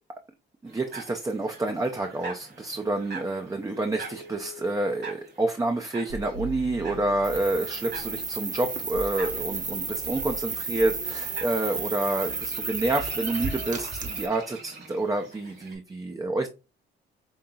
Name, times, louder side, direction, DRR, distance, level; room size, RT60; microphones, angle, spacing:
voice 1, 0.6-16.5, right 2 dB, 15° right, 0.5 m, -28 dB
sound 1, 0.7-15.7, right 4 dB, 60° right, 2.1 m, -44 dB
sound 2, 6.1-8.2 8.9-10.5 10.7-11.1, right 2 dB, 85° right, 0.8 m, -41 dB
sound 3, 7.2-14.3, right 4 dB, 40° right, 1.0 m, -33 dB
5.4 x 2.7 x 2.3 m
cardioid pair, 90°, 20 cm